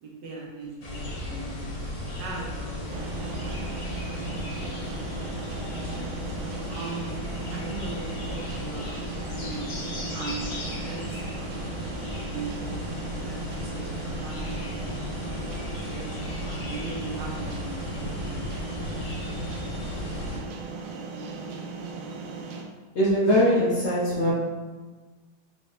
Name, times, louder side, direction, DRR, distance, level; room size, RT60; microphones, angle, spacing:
voice 1, 0.0-1.6 2.2-3.0 3.3-3.7 4.0-4.8 5.6-6.2 6.7-7.2 7.5-9.0 9.3-9.7 10.1-14.8 15.4-18.4, right 3 dB, 70° right, -3 dB, 1.3 m, -40 dB
sound 1, 0.8-20.4, left 1 dB, 50° left, 1.2 m, -35 dB
sound 2, 2.9-22.6, right 4 dB, 85° right, 1.4 m, -37 dB
voice 2, 22.9-24.3, equal, 70° left, -6 dB, 0.6 m, -21 dB
4.0 x 3.1 x 3.0 m, 1.3 s
omnidirectional pair, 2.2 m